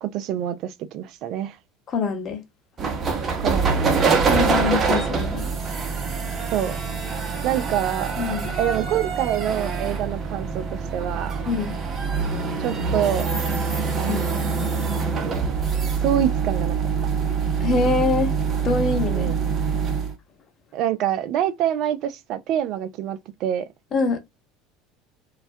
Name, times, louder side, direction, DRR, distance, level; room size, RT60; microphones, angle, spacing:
voice 1, 0.0-1.6 3.4-3.8 6.5-6.8 7.4-8.1 8.6-11.4 12.6-13.3 13.9-14.4 16.0-16.8 19.1-19.5 20.7-23.7, right 10 dB, 55° right, 0.4 m, -26 dB
voice 2, 1.9-2.4 4.3-5.4 8.2-8.5 11.5-11.8 14.1-14.2 17.6-18.3 18.6-19.3 23.9-24.2, left 4 dB, 40° left, 0.8 m, -24 dB
sound 1, 2.8-20.1, right 5 dB, 35° right, 0.8 m, -25 dB
2.3 x 2.1 x 2.5 m
hypercardioid pair, 75°, 0 cm